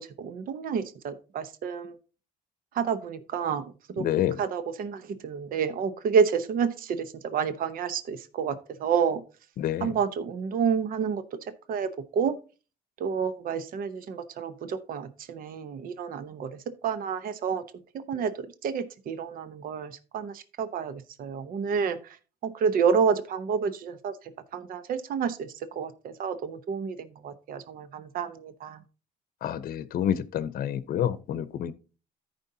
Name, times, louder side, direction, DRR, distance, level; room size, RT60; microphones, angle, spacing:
voice 1, 0.0-1.9 2.8-3.6 4.0-4.1 4.4-8.5 8.8-9.2 9.8-11.2 11.7-12.3 13.0-16.5 16.8-17.6 18.1-18.3 18.6-22.0 22.4-24.1 24.5-25.5 25.8-25.9 26.2-27.0 27.2-28.8, right 6 dB, 60° right, 0.9 m, -29 dB
voice 2, 4.0-4.4 9.6-9.9 29.4-31.7, left 10 dB, 60° left, 0.7 m, -28 dB
14.0 x 5.3 x 2.8 m
cardioid pair, 110°, 17 cm